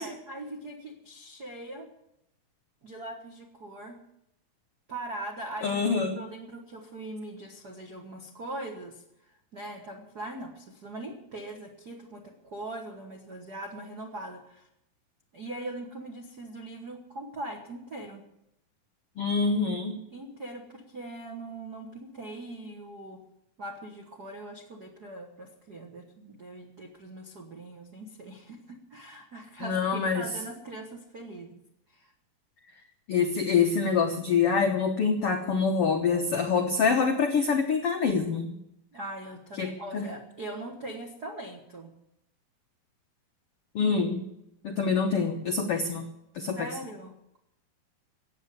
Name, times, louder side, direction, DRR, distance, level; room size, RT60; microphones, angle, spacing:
voice 1, 0.0-1.9 2.8-4.0 4.9-14.7 15.3-18.2 20.1-23.2 23.6-31.6 31.9-32.1 38.9-41.9 46.3-47.1, right 1 dB, 70° right, 1 dB, 0.9 m, -41 dB
voice 2, 5.6-6.2 19.2-20.0 29.6-30.2 33.1-38.5 39.6-40.1 43.7-44.2 44.6-46.0 46.3-46.7, left 5 dB, 85° left, 4 dB, 1.2 m, -26 dB
15.5 x 9.0 x 8.4 m, 0.82 s
omnidirectional pair, 4.4 m